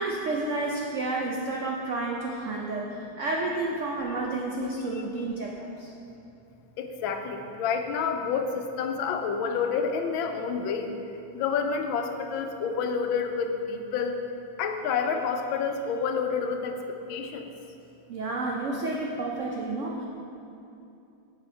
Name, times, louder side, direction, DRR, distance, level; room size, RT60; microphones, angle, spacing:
voice 1, 0.0-5.9 18.1-20.0, right 2 dB, 85° right, -1 dB, 0.6 m, -30 dB
voice 2, 6.8-10.9 11.3-14.2 14.6-16.8 17.1-17.5, left 6 dB, 80° left, 5 dB, 1.4 m, -29 dB
7.7 x 6.0 x 4.4 m, 2.7 s
omnidirectional pair, 2.1 m